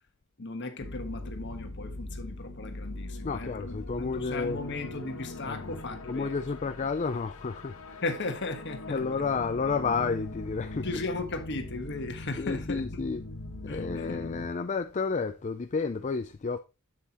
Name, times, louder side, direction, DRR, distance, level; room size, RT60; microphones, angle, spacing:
voice 1, 0.4-6.4 8.0-9.2 10.8-12.8 13.7-14.4, left 3 dB, 50° left, 1.4 m, -36 dB
sound 1, 0.8-14.5, left 2 dB, 70° left, 1.1 m, -41 dB
voice 2, 3.2-4.6 5.4-5.6 6.0-8.0 8.9-10.9 12.4-13.2 13.6-16.6, left 4 dB, 30° left, 0.4 m, -31 dB
8.2 x 7.7 x 3.0 m
head